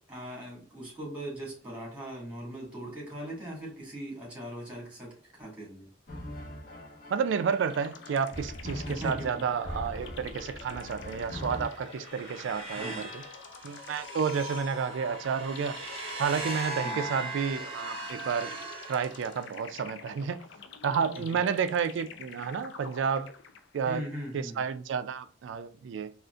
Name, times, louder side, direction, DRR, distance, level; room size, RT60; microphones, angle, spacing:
voice 1, 0.1-5.9 8.8-9.4 12.7-13.1 16.8-17.0 21.1-21.4 23.8-24.6, equal, 5° right, 1.6 m, -40 dB
sound 1, 6.1-11.7, left 1 dB, 45° left, 1.0 m, -41 dB
voice 2, 7.1-13.2 13.6-15.8 16.2-18.5 18.9-20.4 20.8-23.3 23.7-24.0 24.3-26.1, right 6 dB, 80° right, 0.3 m, -31 dB
sound 2, 7.5-23.9, left 5 dB, 75° left, 0.5 m, -48 dB
sound 3, 11.4-19.7, right 2 dB, 30° right, 0.9 m, -39 dB
3.7 x 2.4 x 2.3 m
head